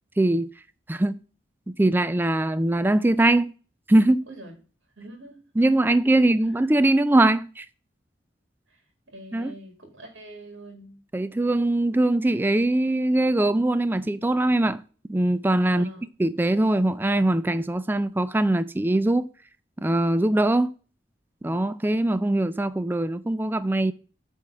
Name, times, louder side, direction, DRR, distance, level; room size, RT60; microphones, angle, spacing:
voice 1, 0.2-0.5 0.9-1.2 1.8-3.5 3.9-4.2 5.6-7.7 9.3-9.5 11.1-14.8 15.1-15.9 16.2-19.3 19.8-20.7 21.4-23.9, right 1 dB, 10° right, 0.3 m, -22 dB
voice 2, 5.0-5.4 8.7-8.8 9.1-11.0 15.7-16.0, right 1 dB, 90° right, 2.2 m, -44 dB
8.9 x 3.6 x 5.4 m
head